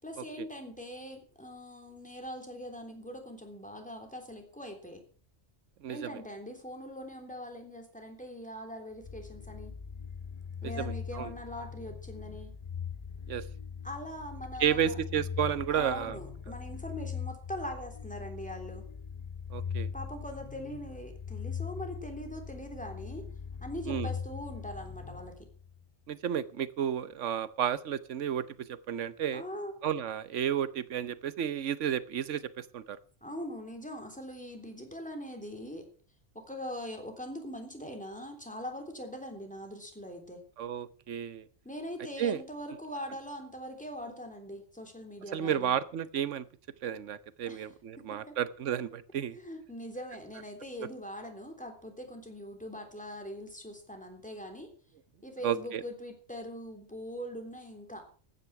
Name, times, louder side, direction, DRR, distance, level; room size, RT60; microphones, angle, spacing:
voice 1, 0.0-5.0 5.9-9.8 10.6-12.6 13.8-15.0 15.7-18.9 19.9-23.3 23.6-25.5 29.3-29.7 33.2-35.9 36.3-40.4 41.6-45.8 47.5-47.6 48.0-48.4 49.1-54.7 55.2-58.0, equal, 5° left, 4 dB, 3.3 m, -42 dB
voice 2, 5.8-6.2 10.6-11.3 13.3-13.4 14.6-16.2 19.5-19.9 23.9-24.1 26.1-29.4 29.8-33.0 40.6-41.5 42.2-42.4 45.3-46.5 46.8-49.4 55.4-55.8, right 9 dB, 75° right, 16 dB, 1.1 m, -32 dB
sound 1, 9.0-25.8, left 6 dB, 40° left, 0.4 m, -41 dB
15.0 x 9.8 x 5.8 m, 0.42 s
omnidirectional pair, 1.3 m